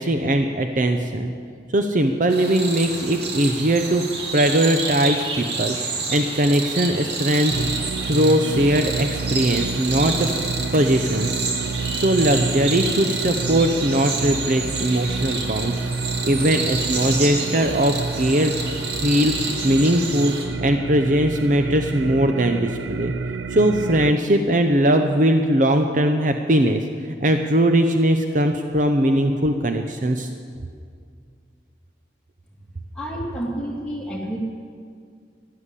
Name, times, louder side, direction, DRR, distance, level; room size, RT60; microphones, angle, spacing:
voice 1, 0.0-1.3 1.7-4.0 4.3-7.5 8.1-11.5 12.0-15.9 16.2-18.5 19.0-23.1 23.5-30.3, right 1 dB, 45° right, 6 dB, 0.7 m, -20 dB
sound 1, 2.3-20.4, right 3 dB, 70° right, 2.2 m, -29 dB
sound 2, 7.5-24.1, right 4 dB, 90° right, 0.5 m, -29 dB
voice 2, 32.9-34.4, equal, 5° left, -4 dB, 2.5 m, -29 dB
12.5 x 11.5 x 8.3 m, 2.2 s
head